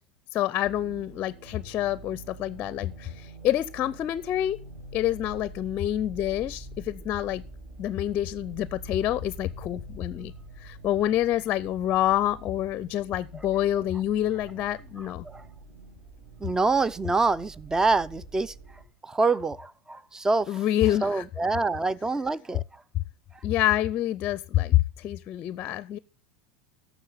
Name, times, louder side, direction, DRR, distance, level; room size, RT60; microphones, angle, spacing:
voice 1, 0.3-4.6 4.9-7.4 7.8-10.3 10.6-15.3 20.5-21.2 23.4-26.0, left 12 dB, 40° left, 0.5 m, -27 dB
sound 1, 0.6-18.8, right 1 dB, 55° right, 6.6 m, -45 dB
voice 2, 16.4-18.5 19.0-20.5 21.0-22.6, right 3 dB, 10° right, 0.5 m, -26 dB
12.0 x 7.0 x 5.6 m
hypercardioid pair, 100°, 5 cm